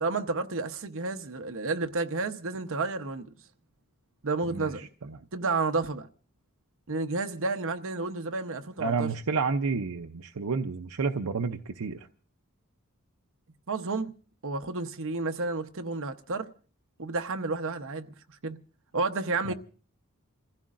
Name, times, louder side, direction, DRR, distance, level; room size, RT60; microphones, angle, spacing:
voice 1, 0.0-3.3 4.2-4.8 5.3-6.1 6.9-9.1 13.7-14.1 14.4-16.5 17.0-18.1 18.4-18.6 18.9-19.5, right 3 dB, 65° right, 0.9 m, -31 dB
voice 2, 4.5-5.3 8.8-12.1 19.4-19.5, right 4 dB, 90° right, 0.7 m, -30 dB
28.0 x 15.0 x 2.5 m
head